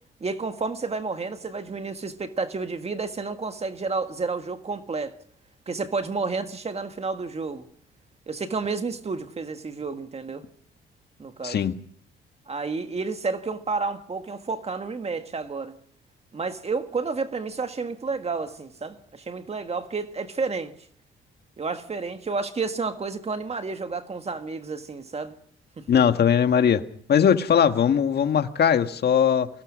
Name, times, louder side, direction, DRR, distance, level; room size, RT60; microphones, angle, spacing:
voice 1, 0.2-5.1 5.7-7.7 8.3-10.4 11.2-11.6 12.5-15.8 16.3-20.7 21.6-25.3 25.8-26.0, right 4 dB, 30° right, 1.7 m, -30 dB
voice 2, 11.4-11.7 25.9-26.8 27.1-29.5, left 8 dB, 55° left, 1.6 m, -20 dB
24.0 x 17.5 x 6.3 m
cardioid pair, 90°, 20 cm